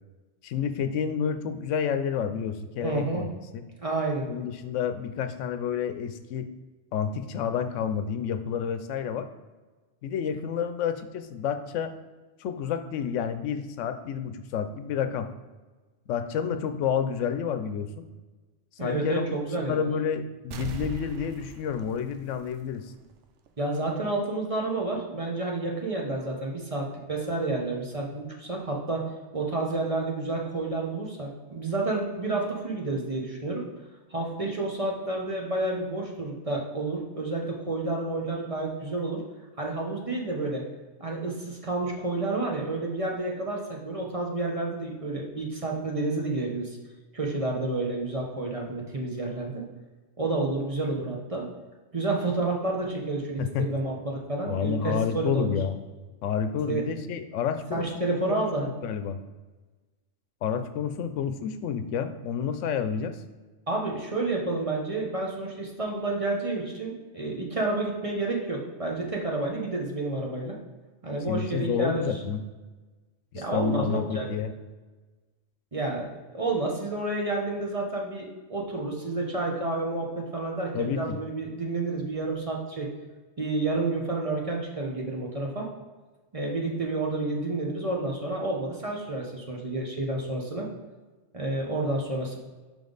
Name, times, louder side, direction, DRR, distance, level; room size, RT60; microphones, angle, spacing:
voice 1, 0.4-3.6 4.3-6.5 6.9-9.3 10.0-11.9 12.4-15.3 16.1-18.1 18.8-19.2 19.6-22.9 53.4-53.7 54.4-55.8 56.2-58.4 58.8-59.2 60.4-63.2 71.3-72.4 73.3-74.5 80.7-81.2, left 7 dB, 90° left, 9 dB, 0.9 m, -29 dB
voice 2, 2.8-3.2 3.8-4.2 18.8-19.9 23.6-33.6 34.1-39.2 39.6-40.6 41.0-46.8 47.1-49.6 50.2-51.5 51.9-55.5 56.7-56.8 57.7-58.7 63.7-70.6 71.0-72.0 73.3-74.3 75.7-82.9 83.4-85.7 86.3-90.7 91.3-92.4, right 2 dB, 30° right, -1 dB, 0.9 m, -30 dB
sound 1, 20.5-23.1 23.5-23.6, right 6 dB, 75° right, 0.9 m, -40 dB
5.3 x 5.2 x 3.9 m, 1.3 s
omnidirectional pair, 1.2 m